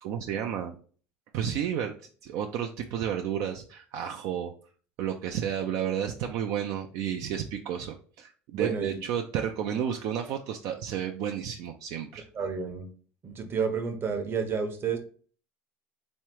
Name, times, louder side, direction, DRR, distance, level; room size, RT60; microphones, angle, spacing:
voice 1, 0.0-0.8 1.3-1.9 2.2-4.5 5.0-12.3, right 9 dB, 70° right, 4 dB, 0.4 m, -32 dB
voice 2, 8.5-9.0 12.3-12.9 13.2-15.0, right 6 dB, 40° right, 7 dB, 0.8 m, -30 dB
3.6 x 3.1 x 3.0 m, 0.42 s
supercardioid pair, 90°, 6 cm